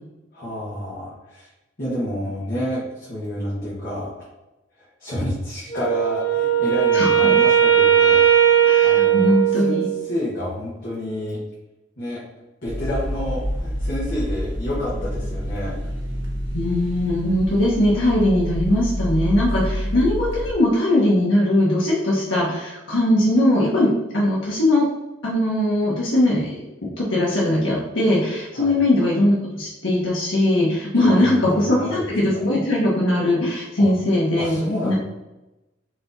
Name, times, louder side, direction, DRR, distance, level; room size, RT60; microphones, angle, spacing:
voice 1, 0.3-1.5 1.8-4.1 4.8-8.2 8.8-11.4 12.0-12.2 12.6-15.7 28.5-28.8 31.0-32.4 33.8-33.9 34.4-34.9, left 1 dB, 50° left, -7 dB, 1.2 m, -29 dB
Wind instrument woodwind instrument, 5.7-10.1, right 9 dB, 15° left, 0.7 m, -17 dB
voice 2, 6.9-7.4 8.6-9.9 16.5-24.9 25.2-34.5 34.8-34.9, left 1 dB, 85° left, -6 dB, 1.0 m, -20 dB
sound 1, 12.7-20.5, equal, 85° right, 1.4 m, -28 dB
4.6 x 2.9 x 3.9 m, 1.0 s
head